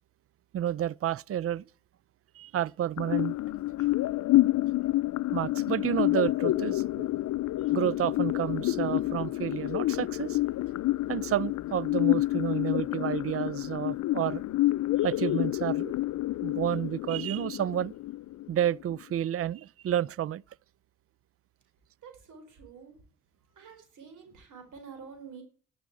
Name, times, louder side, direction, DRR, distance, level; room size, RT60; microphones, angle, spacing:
voice 1, 0.5-1.6 2.3-3.3 5.3-7.1 7.4-10.4 11.1-14.4 15.0-15.9 16.4-17.9 18.5-20.4, right 11 dB, 45° right, 0.5 m, -30 dB
sound 1, 3.0-19.0, left 17 dB, 60° left, 0.5 m, -28 dB
voice 2, 22.0-23.0 23.6-25.4, right 6 dB, 70° right, 4.5 m, -48 dB
11.5 x 6.2 x 8.7 m
supercardioid pair, 60°, 32 cm